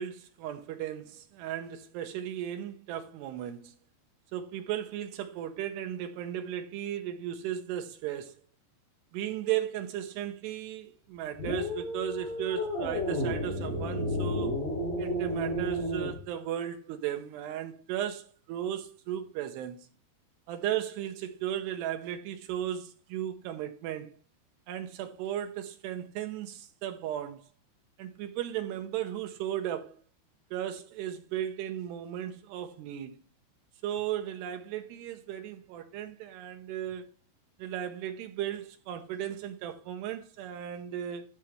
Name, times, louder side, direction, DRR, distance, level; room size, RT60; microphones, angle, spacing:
voice 1, 0.0-3.7 4.3-8.4 9.1-14.5 15.0-19.9 20.5-24.2 24.7-27.4 28.0-29.9 30.5-33.1 33.8-37.1 37.6-41.3, right 11 dB, 80° right, 2.8 m, -36 dB
sound 1, 11.4-16.2, equal, 55° left, 6.8 m, -32 dB
14.0 x 5.7 x 3.2 m
omnidirectional pair, 4.9 m